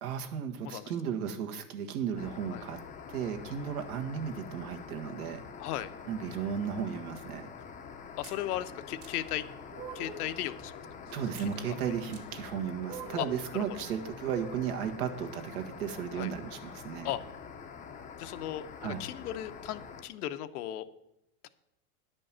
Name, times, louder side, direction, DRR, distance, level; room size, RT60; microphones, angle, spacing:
voice 1, 0.0-2.8 3.1-5.4 6.1-7.5 11.1-17.1 18.8-19.0, right 7 dB, 70° right, 5 dB, 1.6 m, -35 dB
sound 1, 2.2-20.0, left 6 dB, 15° left, 0.7 m, -46 dB
voice 2, 5.6-5.9 8.2-9.4 9.9-10.7 11.6-11.7 13.2-13.3 13.5-13.6 16.1-16.3 17.0-17.2 18.2-20.9 21.4-21.5, left 13 dB, 75° left, 11 dB, 0.9 m, -36 dB
sound 2, 8.2-8.4 9.0-9.1 9.7-10.3 11.4-11.5 12.1-12.2 12.8-13.4, right 5 dB, 40° right, 1.8 m, -44 dB
10.5 x 5.4 x 7.3 m, 0.85 s
supercardioid pair, 135°, 46 cm